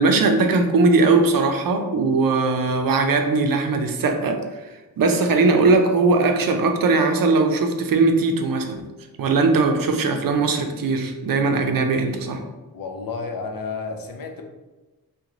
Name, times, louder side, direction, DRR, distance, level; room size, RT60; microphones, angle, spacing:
voice 1, 0.0-4.7 5.0-8.7 9.2-12.4, right 3 dB, 65° right, 5 dB, 0.5 m, -19 dB
voice 2, 12.7-14.4, left 4 dB, 65° left, 4 dB, 0.6 m, -31 dB
2.9 x 2.2 x 3.7 m, 1.2 s
wide cardioid pair, 130°, 36 cm